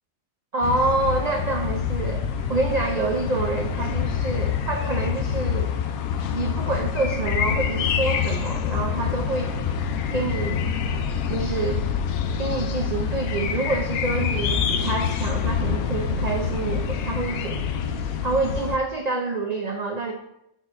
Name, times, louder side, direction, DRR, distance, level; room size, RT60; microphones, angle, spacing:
voice 1, 0.5-5.7 6.3-9.5 10.1-10.7 11.3-11.9 12.4-17.7 18.2-20.1, right 3 dB, 75° right, 1 dB, 0.3 m, -27 dB
sound 1, 0.6-18.8, left 7 dB, 80° left, 1.0 m, -26 dB
4.4 x 4.0 x 5.5 m, 0.82 s
omnidirectional pair, 1.5 m